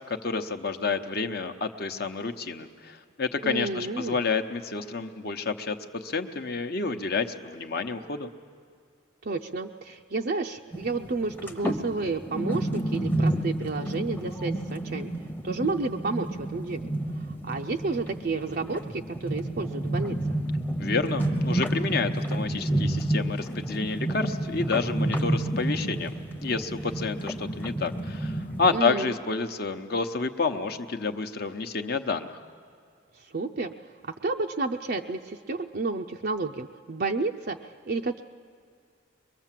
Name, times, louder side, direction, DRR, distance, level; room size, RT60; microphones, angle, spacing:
voice 1, 0.1-8.3 20.8-32.4, left 4 dB, 50° left, 7 dB, 0.9 m, -29 dB
voice 2, 3.4-4.2 9.2-15.1 15.4-20.3 28.7-29.1 33.1-33.7 34.0-38.2, right 3 dB, 45° right, 3 dB, 0.5 m, -31 dB
sound 1, 10.7-28.8, right 1 dB, 10° left, 0.8 m, -30 dB
23.0 x 22.5 x 7.5 m, 2.2 s
head